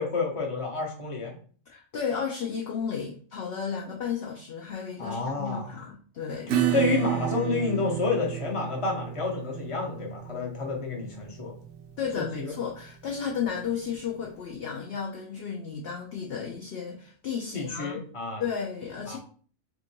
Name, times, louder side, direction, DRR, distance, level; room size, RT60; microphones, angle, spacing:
voice 1, 0.0-1.3 5.0-5.7 6.7-11.5 12.2-12.5 17.5-18.4 19.1-19.2, left 4 dB, 25° left, 0 dB, 0.9 m, -29 dB
voice 2, 1.7-6.6 12.0-18.0 18.4-19.2, left 7 dB, 60° left, -1 dB, 0.7 m, -33 dB
Acoustic guitar / Strum, 6.5-13.7, right 11 dB, 65° right, 0.8 m, -32 dB
3.6 x 2.5 x 4.4 m, 0.44 s
omnidirectional pair, 1.4 m